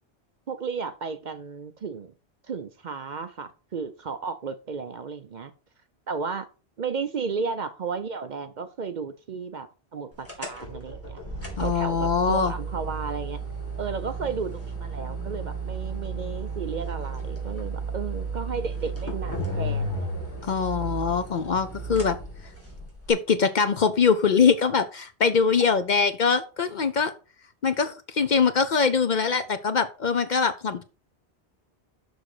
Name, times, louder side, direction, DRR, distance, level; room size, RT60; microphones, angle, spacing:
voice 1, 0.5-2.1 2.5-5.5 6.1-6.5 6.8-11.2 11.6-13.4 13.8-20.1, right 5 dB, 50° right, 0.7 m, -33 dB
sound 1, 10.2-23.1, right 3 dB, 10° left, 2.6 m, -33 dB
voice 2, 11.6-12.5 20.4-22.2 23.1-27.1 27.6-30.8, left 5 dB, 50° left, 0.7 m, -23 dB
6.4 x 6.1 x 4.8 m
omnidirectional pair, 1.1 m